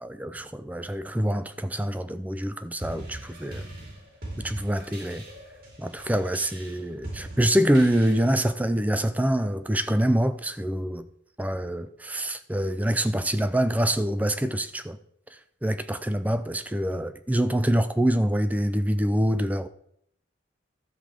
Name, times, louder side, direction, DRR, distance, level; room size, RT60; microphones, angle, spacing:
voice 1, 0.0-3.7 4.4-5.2 5.8-11.1 11.4-15.0 15.6-19.7, right 1 dB, 10° right, 0.5 m, -25 dB
sound 1, 2.8-8.5, right 1 dB, 50° right, 3.2 m, -41 dB
12.5 x 4.9 x 7.5 m
head